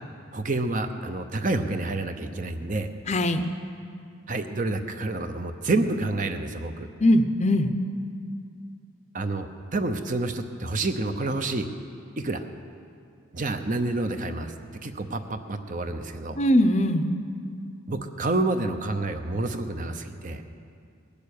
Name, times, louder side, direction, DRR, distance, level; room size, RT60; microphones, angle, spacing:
voice 1, 0.3-2.9 4.3-6.9 9.1-11.7 12.2-12.5 13.3-14.5 14.8-16.4 17.9-20.4, right 2 dB, 40° right, 7 dB, 0.8 m, -28 dB
voice 2, 3.1-3.5 7.0-7.7 16.4-17.1, left 1 dB, 35° left, 9 dB, 0.6 m, -20 dB
20.0 x 6.9 x 8.5 m, 2.3 s
head